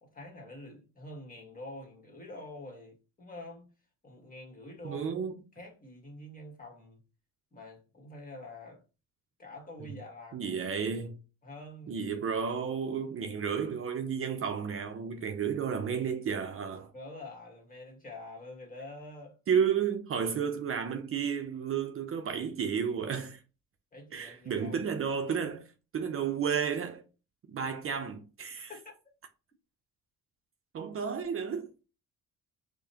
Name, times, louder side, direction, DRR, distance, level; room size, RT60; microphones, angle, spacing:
voice 1, 0.0-3.7 4.0-5.1 5.5-7.0 7.5-8.8 9.4-10.5 11.4-12.0 16.9-19.4 23.9-24.8 27.7-27.8 28.7-28.9, left 2 dB, 30° left, 1.5 m, -46 dB
voice 2, 4.8-5.3 10.3-11.2 11.9-16.9 19.5-23.4 24.1-25.7 25.9-27.0 27.5-28.7 30.7-31.7, right 7 dB, 45° right, 0.6 m, -32 dB
4.7 x 2.2 x 2.8 m
cardioid pair, 90°, 30 cm